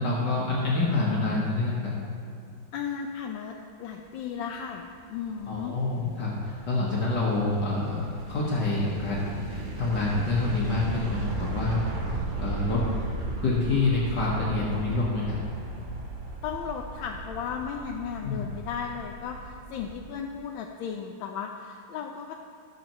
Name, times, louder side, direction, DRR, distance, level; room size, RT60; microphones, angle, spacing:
voice 1, 0.0-1.9 5.5-11.8 12.4-12.9 13.4-15.4 18.2-18.4, left 3 dB, 60° left, -5 dB, 1.8 m, -27 dB
voice 2, 2.7-3.5 3.8-4.8 5.1-5.7 16.4-22.3, left 7 dB, 85° left, 2 dB, 1.4 m, -35 dB
sound 1, 4.6-20.2, right 2 dB, 65° right, 0.4 m, -36 dB
17.5 x 6.6 x 3.0 m, 2.3 s
omnidirectional pair, 2.1 m